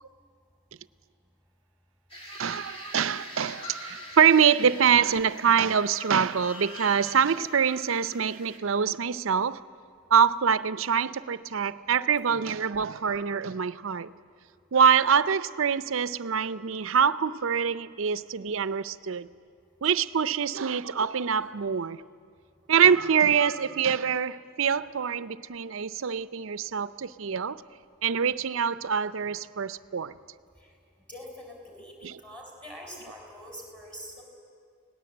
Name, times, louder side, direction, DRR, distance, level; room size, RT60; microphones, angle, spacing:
sound 1, 2.1-8.6, equal, 25° left, 3.2 m, -44 dB
voice 1, 2.3-9.6 10.1-14.1 14.7-19.3 19.8-22.0 22.7-27.6 28.0-30.2 32.0-32.2, right 7 dB, 75° right, 0.6 m, -25 dB
voice 2, 31.1-34.2, equal, 5° left, 4.3 m, -44 dB
28.5 x 18.5 x 7.9 m
head